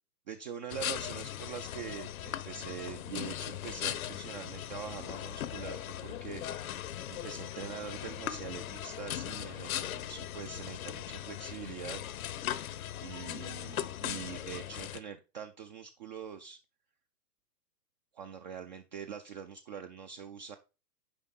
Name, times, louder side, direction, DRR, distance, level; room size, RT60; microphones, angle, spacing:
voice 1, 0.3-6.7 7.1-12.0 13.0-16.6 18.1-20.6, right 7 dB, 30° right, 6 dB, 0.5 m, -44 dB
sound 1, 0.7-15.0, left 11 dB, 55° left, 0.9 m, -39 dB
9.7 x 5.1 x 4.0 m, 0.30 s
hypercardioid pair, 140°, 49 cm